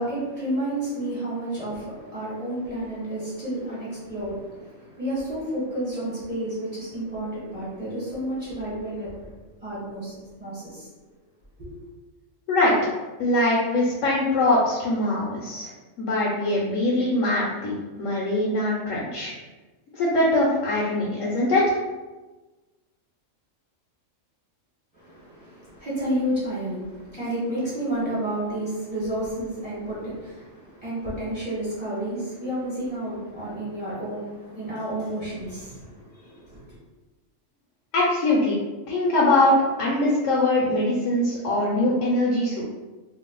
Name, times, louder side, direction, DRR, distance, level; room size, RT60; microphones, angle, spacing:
voice 1, 0.0-10.9 11.6-11.7 24.9-36.8, right 1 dB, 30° right, -9 dB, 1.2 m, -31 dB
voice 2, 13.2-15.7 16.0-19.3 19.9-21.8 37.9-38.6 38.9-42.6, left 1 dB, 75° left, -4 dB, 1.0 m, -22 dB
2.6 x 2.3 x 3.7 m, 1.2 s
omnidirectional pair, 1.3 m